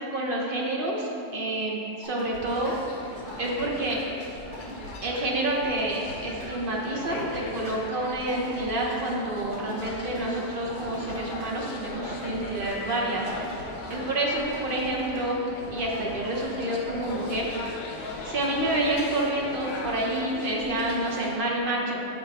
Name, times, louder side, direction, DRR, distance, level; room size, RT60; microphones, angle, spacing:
voice 1, 0.1-2.7 3.4-4.0 5.0-13.3 13.9-15.4 15.7-17.5 18.2-22.0, right 1 dB, 55° right, -2 dB, 0.6 m, -28 dB
sound 1, 2.0-2.4 2.7-2.8 3.1-3.6 3.9-4.0 4.4-4.9 5.2-5.3 5.6-6.1 6.4-6.5 6.9-7.4 7.6-7.7 8.1-8.7 8.9-9.0 9.4-10.2 10.6-11.5 11.9-12.7 13.1-13.6 13.9-14.0 14.4-14.9 15.2-15.3 15.6-16.1 16.4-16.5 16.9-17.4 17.7-17.8 18.1-18.6 18.9-19.0 19.4-19.9 20.2-20.3 20.6-20.7, right 1 dB, 70° right, 1.9 m, -41 dB
sound 2, 2.4-21.4, left 2 dB, 70° left, 1.3 m, -39 dB
6.5 x 3.9 x 4.7 m, 2.8 s
omnidirectional pair, 1.8 m